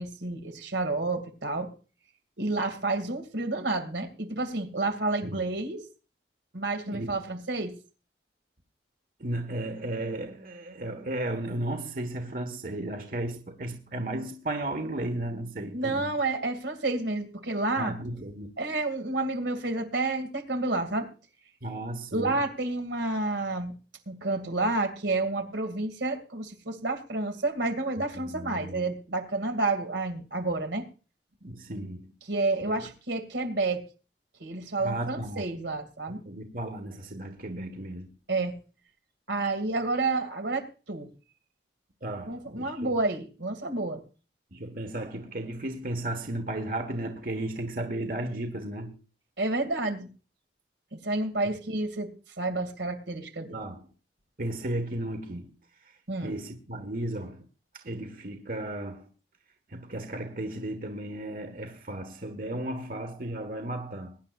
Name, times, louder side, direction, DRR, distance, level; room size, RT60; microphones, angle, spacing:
voice 1, 0.0-1.7 2.4-5.8 6.5-7.7 15.7-17.9 18.6-21.1 22.1-23.7 24.1-30.9 32.3-33.8 34.4-36.2 38.3-38.5 39.3-41.1 42.2-44.0 49.4-50.1 50.9-52.1 52.4-53.5 56.1-56.3, right 2 dB, 90° right, 2.4 m, -30 dB
voice 2, 9.2-16.2 17.8-18.5 21.6-22.4 28.1-28.9 31.4-32.1 32.7-32.9 34.8-35.5 36.2-38.1 42.0-42.9 44.5-49.0 53.5-53.9 54.4-55.5 56.2-57.4 57.7-59.1 59.7-64.2, right 1 dB, 50° right, 1.5 m, -34 dB
22.5 x 10.5 x 2.5 m
head